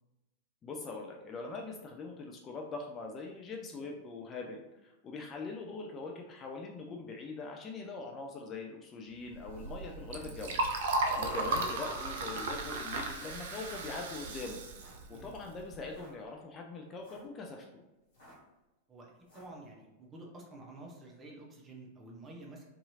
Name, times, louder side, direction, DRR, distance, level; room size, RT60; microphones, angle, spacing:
voice 1, 0.6-17.8, left 3 dB, 25° left, 0 dB, 0.3 m, -43 dB
Liquid, 9.3-16.0, right 2 dB, 55° right, 0.4 m, -36 dB
sound 1, 11.3-11.6 12.4-12.8 13.6-13.9 14.7-15.1 15.8-16.1 16.9-17.3 18.1-18.5 19.2-19.6, equal, 55° left, 1.0 m, -58 dB
voice 2, 15.0-15.4 18.9-22.7, right 2 dB, 20° right, -1 dB, 0.6 m, -50 dB
2.7 x 2.3 x 2.7 m, 1.0 s
figure-of-eight pair, 90°, 0 cm